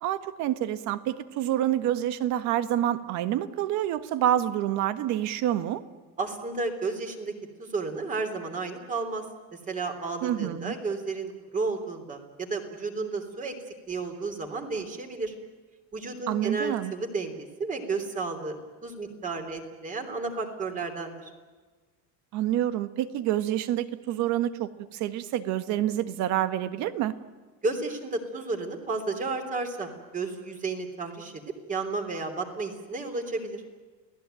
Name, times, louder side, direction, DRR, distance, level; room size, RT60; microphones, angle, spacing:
voice 1, 0.0-5.8 10.2-10.7 16.3-16.9 22.3-27.1, right 12 dB, 55° right, 12 dB, 1.5 m, -27 dB
voice 2, 6.2-7.3 7.6-9.2 9.5-13.6 13.9-15.3 15.9-21.3 27.6-31.4 31.7-33.6, right 3 dB, 20° right, 6 dB, 3.4 m, -32 dB
29.5 x 18.5 x 9.2 m, 1.4 s
cardioid pair, 170°, 34 cm